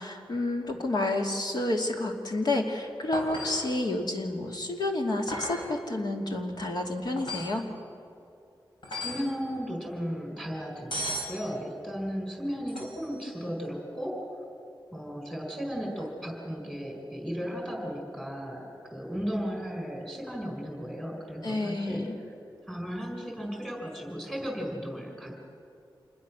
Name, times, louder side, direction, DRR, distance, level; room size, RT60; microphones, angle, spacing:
voice 1, 0.0-7.7 21.4-22.1, left 2 dB, 60° left, 2 dB, 2.7 m, -30 dB
sound 1, 3.1-3.8 5.3-5.8 7.2-7.6 8.8-9.3 10.9-11.4 12.7-13.2 15.9-16.1, left 1 dB, 80° left, 4.8 m, -36 dB
voice 2, 8.9-14.1 14.9-22.0 22.7-25.3, equal, 5° left, 1 dB, 5.0 m, -35 dB
27.5 x 21.0 x 6.3 m, 2.6 s
wide cardioid pair, 130°, 8 cm